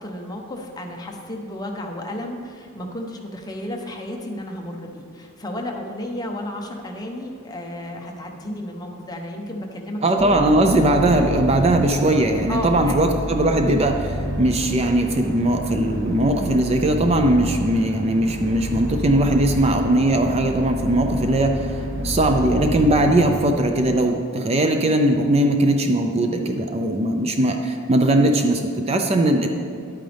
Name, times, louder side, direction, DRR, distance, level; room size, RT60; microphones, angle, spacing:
voice 1, 0.0-10.4 12.5-13.0, left 1 dB, 20° left, 1 dB, 0.9 m, -32 dB
voice 2, 10.0-21.8 22.0-29.5, right 1 dB, 30° right, 4 dB, 0.5 m, -19 dB
sound 1, 10.2-23.5, equal, 55° right, 1.2 m, -30 dB
10.5 x 9.2 x 3.4 m, 2.4 s
head